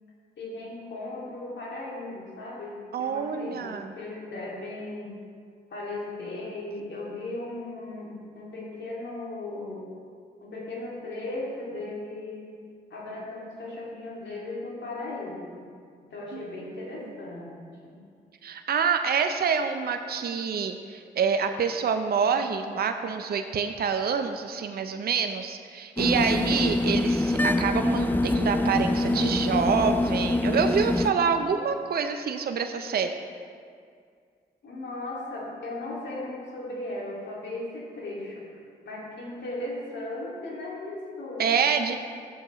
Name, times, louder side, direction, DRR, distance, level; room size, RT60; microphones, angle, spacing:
voice 1, 0.4-5.1 5.7-9.9 10.4-12.5 12.9-15.6 16.0-18.0 34.6-38.5 38.8-41.5, left 2 dB, 70° left, -4 dB, 2.3 m, -37 dB
voice 2, 2.9-3.9 16.3-16.4 18.4-33.1 41.4-42.0, right 6 dB, 55° right, 7 dB, 0.6 m, -27 dB
sound 1, 26.0-31.1, left 2 dB, 10° left, 0.5 m, -25 dB
11.5 x 7.3 x 3.1 m, 2.2 s
supercardioid pair, 45°, 19 cm